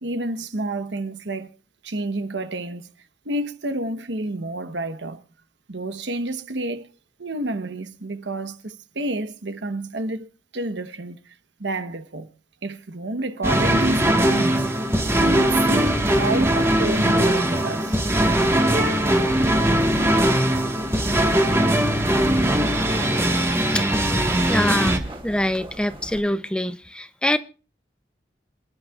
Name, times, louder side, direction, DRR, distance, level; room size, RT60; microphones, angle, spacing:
voice 1, 0.0-1.5 1.8-2.9 3.2-5.2 5.7-6.9 7.2-10.3 10.5-11.2 11.6-12.3 12.6-14.7 15.2-18.0, right 2 dB, 75° right, 1.1 m, -29 dB
sound 1, 13.4-25.0, right 1 dB, 15° right, 1.4 m, -20 dB
sound 2, 19.6-26.2, right 1 dB, 30° right, 2.9 m, -40 dB
voice 2, 24.4-27.4, left 1 dB, 5° left, 0.6 m, -24 dB
27.0 x 10.5 x 2.4 m
head